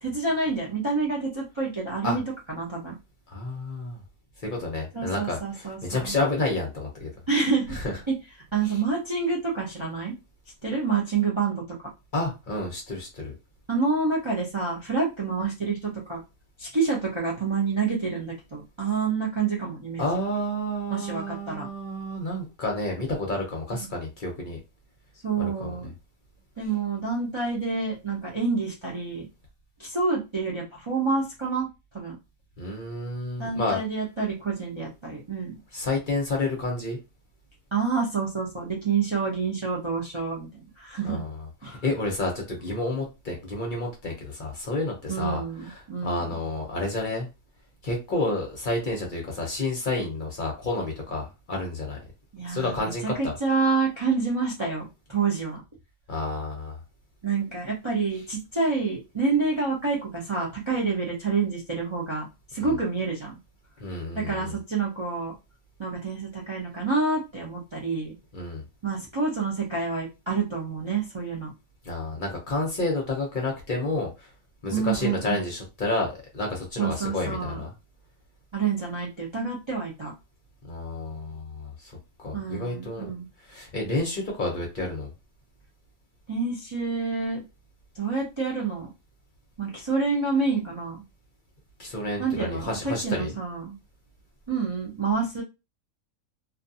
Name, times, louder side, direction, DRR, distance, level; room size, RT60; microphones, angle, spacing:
voice 1, 0.0-2.2 2.5-2.9 4.9-6.1 7.3-7.8 8.1-8.2 8.5-10.1 10.6-11.6 13.7-16.2 16.6-20.0 20.9-21.7 23.8-23.9 25.2-25.9 26.6-29.3 29.8-31.7 31.9-32.2 33.4-35.6 37.7-41.2 41.6-41.8 45.1-46.3 52.3-55.6 57.2-63.4 64.2-65.3 65.8-68.1 68.8-71.5 74.7-75.5 76.8-77.6 78.5-80.1 82.3-83.3 86.3-87.4 87.9-88.9 89.6-91.0 92.2-93.8 94.5-95.4, right 4 dB, 35° right, -4 dB, 0.5 m, -28 dB
voice 2, 3.3-4.0 4.4-7.1 7.7-7.8 8.6-8.8 12.1-13.3 20.0-24.6 25.4-25.7 32.6-33.8 35.7-37.0 41.0-47.3 47.8-52.0 52.5-53.3 56.1-56.8 62.6-62.7 63.8-64.5 68.3-68.6 71.8-74.3 74.6-77.7 80.7-83.1 83.5-85.1 91.8-93.3, left 2 dB, 45° left, 0 dB, 0.8 m, -30 dB
2.5 x 2.4 x 2.6 m, 0.26 s
omnidirectional pair, 1.4 m